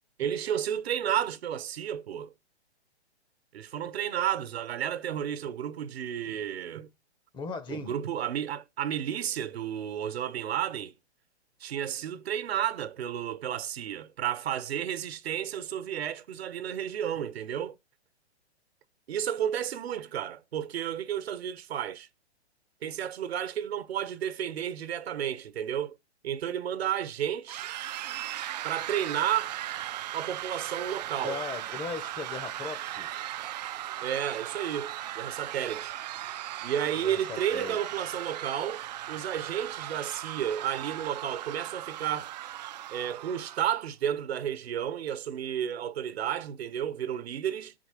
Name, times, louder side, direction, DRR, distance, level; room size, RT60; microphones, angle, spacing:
voice 1, 0.2-2.3 3.5-6.9 7.7-10.9 11.6-17.8 19.1-22.1 22.8-25.9 26.2-27.8 28.6-29.6 30.1-31.4 34.0-35.9 36.6-42.3 42.9-47.7, right 10 dB, 65° right, 1.1 m, -32 dB
voice 2, 7.3-7.9 31.2-33.1 37.0-37.8, left 5 dB, 15° left, 0.8 m, -38 dB
sound 1, 27.5-43.8, right 13 dB, 40° right, 0.5 m, -38 dB
6.5 x 4.6 x 6.3 m
hypercardioid pair, 135°, 34 cm